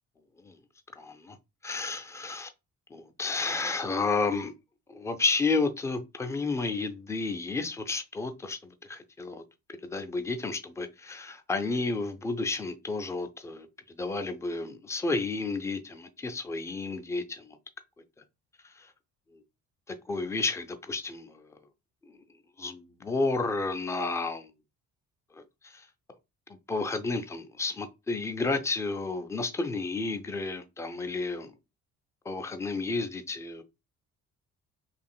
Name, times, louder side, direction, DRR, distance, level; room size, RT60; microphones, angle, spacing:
voice 1, 1.0-1.4 1.6-2.5 2.9-4.5 4.9-9.4 9.8-17.6 18.8-18.9 19.9-21.5 22.6-24.5 25.3-25.9 26.7-31.5 32.3-33.6, left 3 dB, 5° left, 0.4 m, -31 dB
4.1 x 3.0 x 2.2 m
figure-of-eight pair, 45°, 43 cm